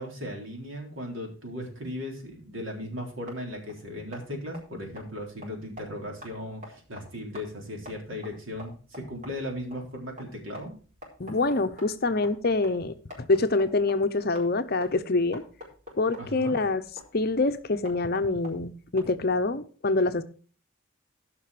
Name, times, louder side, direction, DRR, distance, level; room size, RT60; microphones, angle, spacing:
voice 1, 0.0-10.7 16.2-16.6, left 1 dB, 70° right, 1 dB, 3.8 m, -37 dB
sound 1, 2.9-19.5, left 1 dB, 35° right, 4.7 m, -48 dB
voice 2, 11.2-15.4 16.0-16.8 17.1-20.2, left 3 dB, 45° left, 10 dB, 0.7 m, -26 dB
15.0 x 6.0 x 4.9 m, 0.40 s
head